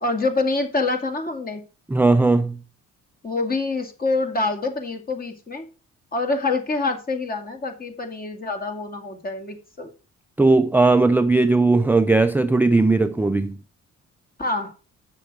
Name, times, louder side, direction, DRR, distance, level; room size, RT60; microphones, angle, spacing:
voice 1, 0.0-1.6 3.2-5.7 6.1-9.9 14.4-14.7, left 3 dB, 30° left, 2.3 m, -26 dB
voice 2, 1.9-2.6 10.4-13.6, right 3 dB, 5° right, 0.4 m, -18 dB
7.7 x 6.5 x 4.9 m
cardioid pair, 90°, 30 cm